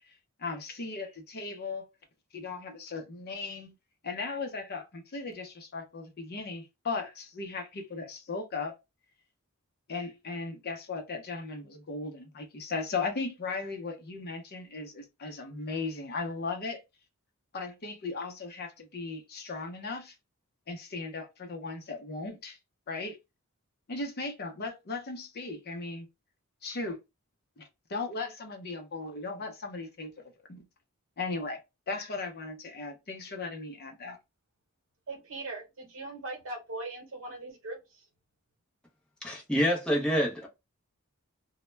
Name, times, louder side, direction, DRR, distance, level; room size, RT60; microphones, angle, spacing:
voice 1, 0.4-1.9 2.3-3.7 4.0-8.7 9.9-16.8 17.5-20.1 20.7-22.6 22.9-23.2 23.9-26.1 26.6-27.0 27.6-30.1 30.5-30.7 31.2-31.6 31.9-34.2, left 3 dB, 45° left, 0.6 m, -37 dB
voice 2, 35.1-38.0, right 2 dB, 65° right, 0.9 m, -40 dB
voice 3, 39.2-40.5, equal, 5° left, 0.6 m, -27 dB
2.2 x 2.1 x 3.1 m
head